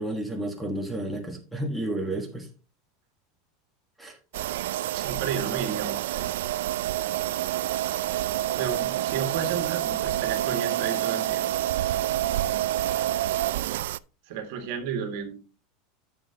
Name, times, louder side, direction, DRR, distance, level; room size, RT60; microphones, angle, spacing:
voice 1, 0.0-2.5 4.0-4.2, right 1 dB, ahead, 0 dB, 1.4 m, -31 dB
sound 1, 4.3-14.0, right 13 dB, 80° right, 0.3 m, -28 dB
voice 2, 4.7-6.3 8.5-11.4 14.3-15.4, right 7 dB, 60° right, 6 dB, 1.8 m, -32 dB
10.0 x 7.1 x 2.9 m, 0.33 s
supercardioid pair, 160°, 0 cm